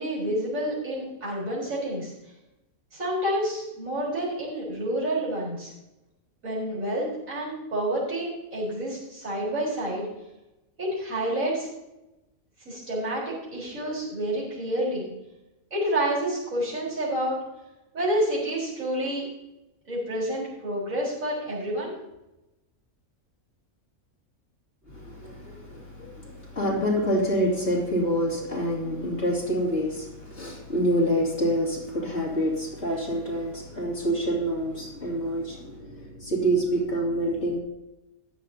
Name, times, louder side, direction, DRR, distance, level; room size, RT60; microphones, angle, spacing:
voice 1, 0.0-2.1 2.9-5.7 6.4-10.1 10.8-11.7 12.6-15.1 15.7-17.4 17.9-19.3 19.9-21.9, right 1 dB, 65° right, -6 dB, 4.6 m, -29 dB
voice 2, 24.9-37.6, equal, 50° left, -3 dB, 2.9 m, -27 dB
14.5 x 10.5 x 2.8 m, 0.96 s
omnidirectional pair, 1.5 m